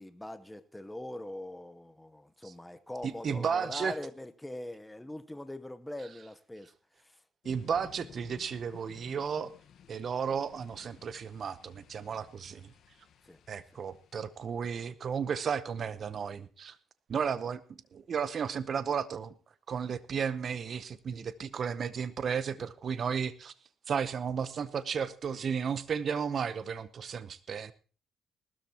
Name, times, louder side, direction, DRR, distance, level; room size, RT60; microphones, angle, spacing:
voice 1, 0.0-6.7 7.0-7.2 12.5-12.6 13.2-13.4 22.6-22.7, left 1 dB, 10° left, 0.9 m, -42 dB
voice 2, 3.0-4.0 7.4-9.5 9.9-12.7 13.5-16.8 17.1-19.3 19.7-23.5 23.9-27.7, right 6 dB, 55° right, 0.8 m, -33 dB
sound 1, 7.4-14.9, left 8 dB, 70° left, 1.3 m, -56 dB
19.5 x 13.0 x 2.9 m
cardioid pair, 90°, 0 cm